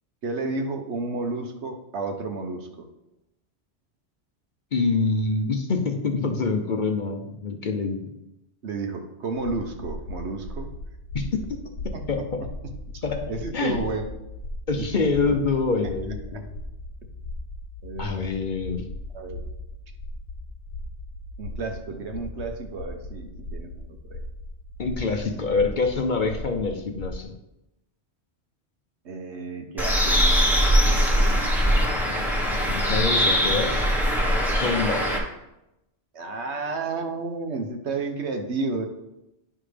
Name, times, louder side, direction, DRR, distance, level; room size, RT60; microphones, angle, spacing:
voice 1, 0.2-2.9 8.6-10.7 11.9-12.0 12.9-14.1 14.8-15.4 16.3-16.4 17.8-18.3 19.1-19.4 21.4-24.2 29.0-31.9 36.1-38.9, right 3 dB, 75° right, 5 dB, 1.2 m, -32 dB
voice 2, 4.7-8.0 11.1-11.4 12.1-12.2 13.0-13.8 14.7-16.5 18.0-18.9 24.8-27.3 32.7-33.9 34.5-35.1, left 4 dB, 50° left, 4 dB, 0.8 m, -26 dB
sound 1, 9.4-27.2, left 1 dB, 80° left, 1.4 m, -38 dB
Bird, 29.8-35.2, equal, ahead, 1.2 m, -21 dB
9.9 x 5.6 x 3.4 m, 0.90 s
omnidirectional pair, 1.2 m